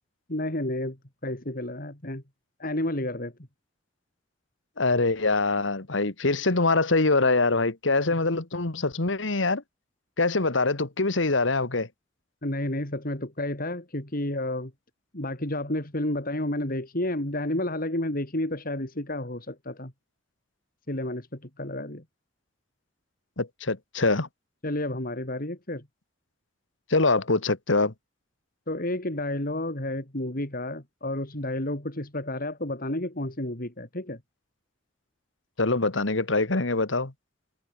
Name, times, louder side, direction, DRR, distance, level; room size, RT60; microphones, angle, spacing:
voice 1, 0.3-1.0 1.2-2.2 2.6-3.3 12.4-14.7 15.1-19.9 20.9-22.0 24.6-25.9 28.7-34.2, left 1 dB, 50° left, 4.1 m, -31 dB
voice 2, 4.8-9.6 10.2-11.9 23.4-24.3 26.9-27.9 35.6-37.1, left 3 dB, 85° left, 1.8 m, -24 dB
head